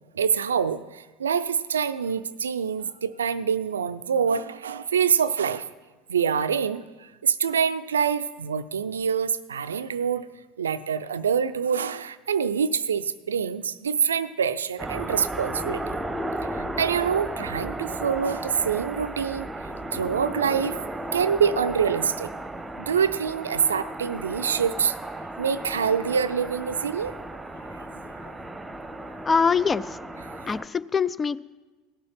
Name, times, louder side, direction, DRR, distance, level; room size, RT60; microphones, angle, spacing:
voice 1, 0.2-5.7 6.1-10.3 10.6-16.0 16.5-19.5 19.9-20.8 21.1-22.3 22.8-24.9 25.4-27.2, right 7 dB, 90° right, 14 dB, 0.4 m, -25 dB
sound 1, 14.8-30.7, right 1 dB, 10° right, 1.0 m, -34 dB
voice 2, 29.3-30.0 30.5-31.4, left 5 dB, 25° left, 18 dB, 0.4 m, -23 dB
16.5 x 6.7 x 5.7 m, 1.2 s
hypercardioid pair, 75°, 0 cm